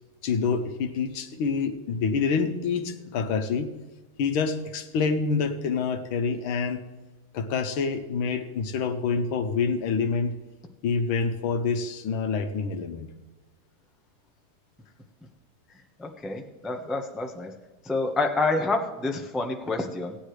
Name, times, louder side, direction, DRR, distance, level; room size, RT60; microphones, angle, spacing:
voice 1, 0.2-3.7 4.2-6.8 7.3-10.4 10.8-13.1, left 5 dB, 85° left, 7 dB, 1.8 m, -27 dB
voice 2, 16.0-17.5 17.8-20.2, left 3 dB, ahead, 3 dB, 0.3 m, -28 dB
16.5 x 9.8 x 3.2 m, 1.2 s
omnidirectional pair, 2.2 m